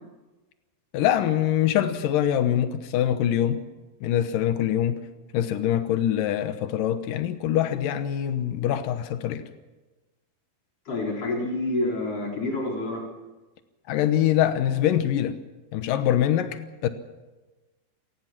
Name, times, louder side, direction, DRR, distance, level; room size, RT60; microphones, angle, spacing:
voice 1, 0.9-3.6 4.0-5.0 5.3-9.5 13.9-15.4 15.7-16.9, left 11 dB, 85° left, 9 dB, 1.9 m, -24 dB
voice 2, 10.9-13.0, left 2 dB, 30° left, -1 dB, 5.1 m, -28 dB
29.0 x 18.5 x 6.1 m, 1.2 s
omnidirectional pair, 5.5 m